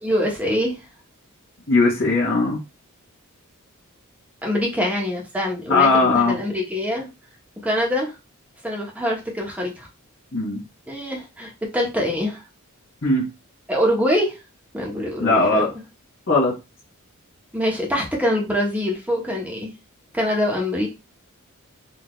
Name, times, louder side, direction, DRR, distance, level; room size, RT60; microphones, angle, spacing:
voice 1, 0.0-0.8 4.4-7.1 7.6-8.1 8.6-9.9 10.9-12.4 13.7-14.3 14.7-15.7 17.5-19.7 20.1-20.9, equal, 5° right, -1 dB, 1.1 m, -24 dB
voice 2, 1.7-2.6 5.7-6.4 10.3-10.6 13.0-13.2 15.2-15.7 16.3-16.5, left 3 dB, 55° left, -7 dB, 1.5 m, -18 dB
4.1 x 2.7 x 3.2 m, 0.27 s
head